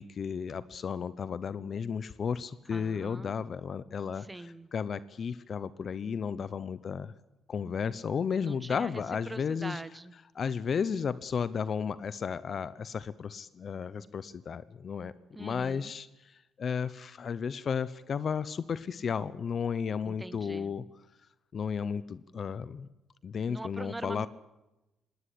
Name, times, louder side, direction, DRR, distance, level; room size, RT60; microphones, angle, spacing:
voice 1, 0.0-7.1 7.5-9.8 10.3-15.1 15.4-20.8 21.5-22.9 23.2-24.3, left 6 dB, 50° left, 16 dB, 0.8 m, -33 dB
voice 2, 2.7-3.3 4.2-4.7 8.4-10.1 15.3-15.9 20.0-20.7 23.5-24.3, right 2 dB, 15° right, 15 dB, 1.1 m, -43 dB
20.5 x 18.0 x 8.5 m, 0.97 s
cardioid pair, 90°, 0 cm